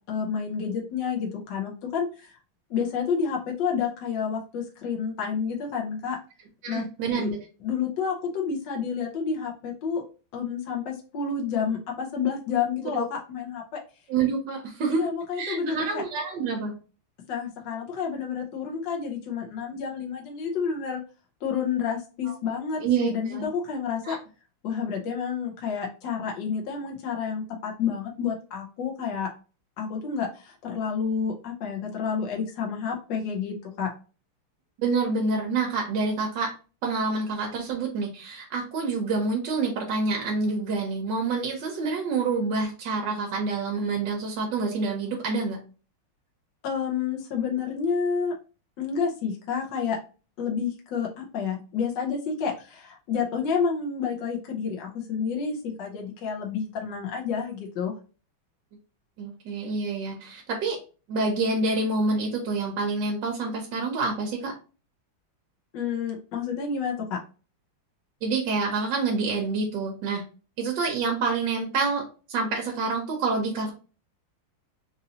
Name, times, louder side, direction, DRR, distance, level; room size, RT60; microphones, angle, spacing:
voice 1, 0.1-2.4 2.7-6.2 6.7-6.8 7.1-7.3 7.6-10.0 10.3-13.8 14.9-16.0 17.3-21.0 21.4-24.2 24.6-29.3 29.8-33.9 46.6-48.3 48.8-50.0 50.4-58.0 65.7-67.2, left 6 dB, 65° left, -1 dB, 1.4 m, -29 dB
voice 2, 6.6-7.4 13.0-13.1 14.1-15.1 15.4-16.7 22.3-22.4 22.8-23.5 24.0-24.2 34.8-36.5 36.8-45.6 59.2-60.8 61.1-64.5 68.2-70.2 70.6-73.7, right 4 dB, 65° right, 1 dB, 1.3 m, -27 dB
4.1 x 2.6 x 2.7 m, 0.35 s
omnidirectional pair, 2.3 m